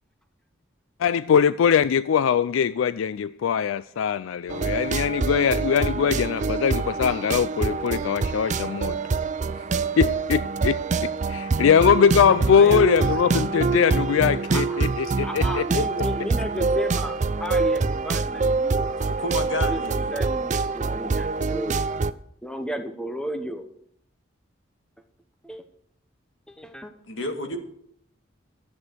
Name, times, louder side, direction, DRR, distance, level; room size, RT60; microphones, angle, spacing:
voice 1, 1.0-9.0 10.0-10.8 11.3-15.8, left 7 dB, 85° left, 0.4 m, -21 dB
sound 1, 4.5-22.1, right 4 dB, 40° right, 0.4 m, -25 dB
voice 2, 12.3-12.9 14.5-14.8 15.2-19.1 19.5-21.9 22.4-23.6 25.4-25.6 26.5-26.9, equal, 5° left, 0.9 m, -34 dB
voice 3, 19.0-20.1 27.1-27.6, left 1 dB, 70° left, 2.0 m, -31 dB
12.5 x 8.0 x 6.6 m
head